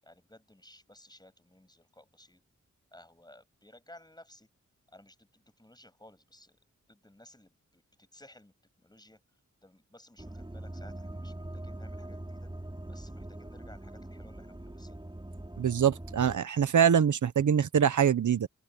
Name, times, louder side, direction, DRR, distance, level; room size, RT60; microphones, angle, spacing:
voice 1, 0.0-2.4 2.9-4.5 4.9-9.2 9.6-12.5 12.9-15.0, left 1 dB, 15° left, 8.0 m, -57 dB
sound 1, 10.2-16.4, right 1 dB, 15° right, 6.2 m, -42 dB
voice 2, 15.6-18.5, right 8 dB, 80° right, 0.9 m, -24 dB
open air
wide cardioid pair, 80°, 30 cm